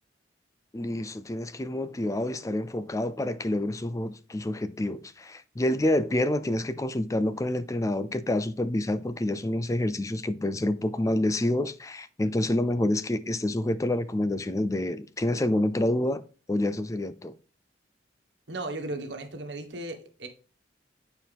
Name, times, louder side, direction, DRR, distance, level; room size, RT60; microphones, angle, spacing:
voice 1, 0.7-16.2 16.5-17.3, left 1 dB, 15° left, 0.4 m, -28 dB
voice 2, 18.5-20.3, right 2 dB, 75° right, 1.5 m, -36 dB
9.3 x 4.5 x 3.5 m
head